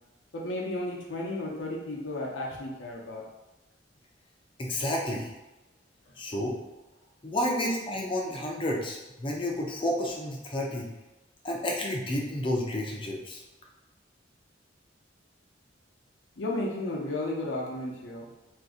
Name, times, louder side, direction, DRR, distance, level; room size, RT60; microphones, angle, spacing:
voice 1, 0.3-3.2 7.3-7.6 16.4-18.3, left 1 dB, 85° left, -2 dB, 0.6 m, -33 dB
voice 2, 4.6-5.3 6.2-6.6 7.2-10.9 11.4-13.4, left 1 dB, 30° left, -1 dB, 0.4 m, -30 dB
2.6 x 2.5 x 3.6 m, 1.0 s
head